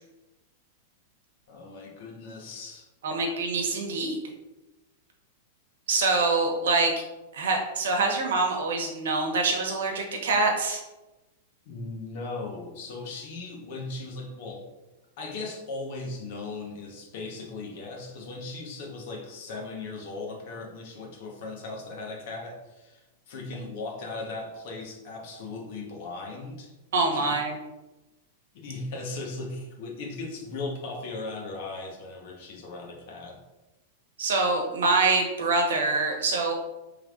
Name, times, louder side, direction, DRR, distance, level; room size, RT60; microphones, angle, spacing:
voice 1, 1.5-2.9 11.7-14.6 15.2-26.7 27.1-27.4 28.5-33.4, left 3 dB, 50° left, 1 dB, 1.0 m, -38 dB
voice 2, 3.0-4.2 5.9-6.9 7.3-10.8 26.9-27.5 34.2-36.5, right 3 dB, 90° right, 2 dB, 1.0 m, -25 dB
5.0 x 3.3 x 2.4 m, 1.1 s
supercardioid pair, 165°, 0 cm